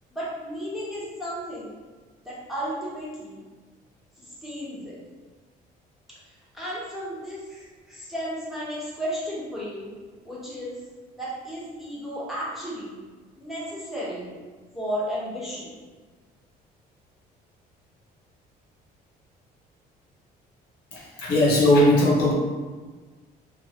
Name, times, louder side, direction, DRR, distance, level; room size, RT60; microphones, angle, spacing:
voice 1, 0.1-1.7 2.2-3.4 4.2-5.0 6.5-9.9 10.2-10.8 11.2-13.0 13.4-14.3 14.7-15.7, equal, ahead, -8 dB, 1.0 m, -33 dB
voice 2, 20.9-22.3, left 1 dB, 85° left, -5 dB, 0.9 m, -19 dB
2.8 x 2.5 x 2.8 m, 1.4 s
cardioid pair, 110°, 17 cm